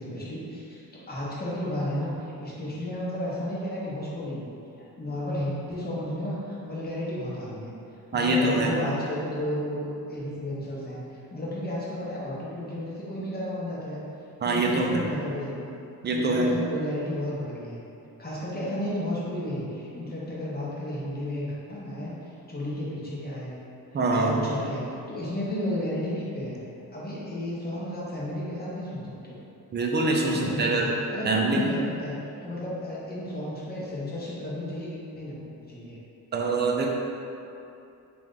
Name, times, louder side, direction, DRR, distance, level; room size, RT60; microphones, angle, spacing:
voice 1, 0.0-4.5 5.0-7.7 8.1-14.0 14.4-15.7 16.1-17.8 18.2-22.2 22.5-23.5 24.1-26.6 26.9-29.4 30.2-32.2 32.4-36.0, left 1 dB, 25° left, -7 dB, 0.9 m, -33 dB
voice 2, 8.1-8.8 14.4-15.0 16.0-16.5 23.9-24.4 29.7-30.9 31.2-31.6 36.3-36.9, right 2 dB, 30° right, 0 dB, 0.4 m, -24 dB
2.9 x 2.5 x 3.7 m, 2.7 s
cardioid pair, 95°, 37 cm